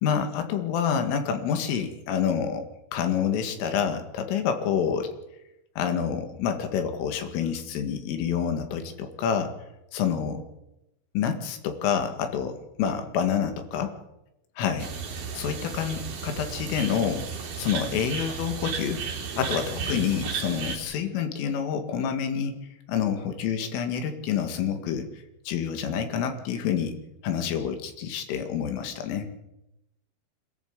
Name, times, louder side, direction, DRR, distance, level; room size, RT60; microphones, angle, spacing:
voice 1, 0.0-2.6 2.9-5.2 5.8-9.5 9.9-10.4 11.1-14.0 14.6-14.9 15.3-17.3 17.6-19.0 19.4-22.5 22.9-27.0 27.2-29.3, left 7 dB, 85° left, 7 dB, 4.6 m, -28 dB
sound 1, 14.8-20.8, right 5 dB, 50° right, 4.0 m, -34 dB
26.0 x 14.0 x 8.2 m, 0.91 s
omnidirectional pair, 5.6 m